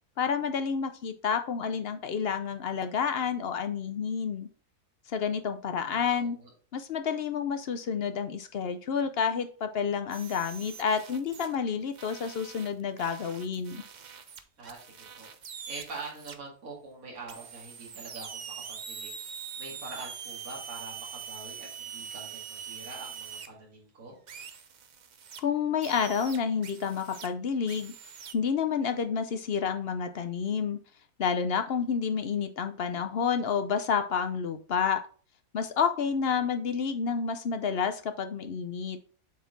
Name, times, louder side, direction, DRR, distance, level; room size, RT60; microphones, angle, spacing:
voice 1, 0.2-4.5 5.1-6.4 6.7-13.8 25.4-27.9 28.3-30.8 31.2-35.0 35.5-39.0, left 6 dB, 60° left, 9 dB, 0.6 m, -29 dB
voice 2, 5.8-6.5 14.6-15.3 15.7-18.4 18.7-19.1 19.6-24.2 36.3-36.6, right 3 dB, 65° right, -3 dB, 2.6 m, -44 dB
sound 1, 10.1-11.6 11.9-16.4 17.3-23.5 24.3-25.4 25.8-27.3 27.7-28.3, right 7 dB, 85° right, 0.4 m, -43 dB
7.5 x 4.1 x 4.0 m, 0.41 s
omnidirectional pair, 1.6 m